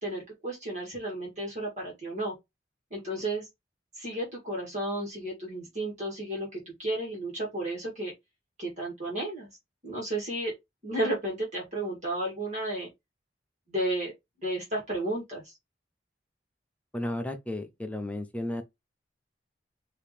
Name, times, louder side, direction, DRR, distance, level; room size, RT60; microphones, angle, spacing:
voice 1, 0.0-2.3 2.9-3.5 3.9-8.1 8.6-9.5 9.8-10.5 10.8-12.9 13.7-14.1 14.4-15.5, right 1 dB, 40° right, 2.1 m, -33 dB
voice 2, 16.9-18.6, left 1 dB, 10° left, 0.5 m, -33 dB
5.0 x 2.9 x 3.3 m
head